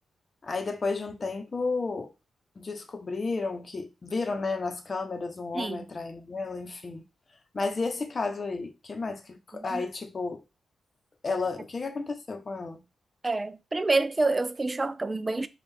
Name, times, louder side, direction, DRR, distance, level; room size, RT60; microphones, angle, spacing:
voice 1, 0.4-2.1 2.6-7.1 7.5-10.4 11.2-12.8, left 3 dB, 40° left, 0.8 m, -32 dB
voice 2, 5.5-5.9 9.5-9.8 13.2-15.5, right 3 dB, 25° right, 0.3 m, -28 dB
4.4 x 2.4 x 3.4 m
cardioid pair, 85°, 0 cm